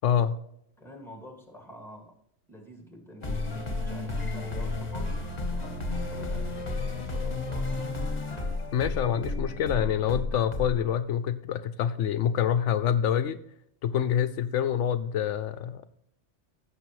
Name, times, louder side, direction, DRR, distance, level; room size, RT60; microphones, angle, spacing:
voice 1, 0.0-0.4 8.7-13.4 13.8-15.9, left 9 dB, 80° left, 12 dB, 0.9 m, -26 dB
voice 2, 0.8-2.1 2.5-5.2 5.5-8.1, equal, ahead, 2 dB, 2.1 m, -47 dB
sound 1, 3.2-10.9, left 2 dB, 35° left, 1.4 m, -32 dB
sound 2, 3.2-8.6, left 3 dB, 20° left, 1.7 m, -43 dB
15.0 x 6.5 x 3.1 m, 0.73 s
omnidirectional pair, 1.2 m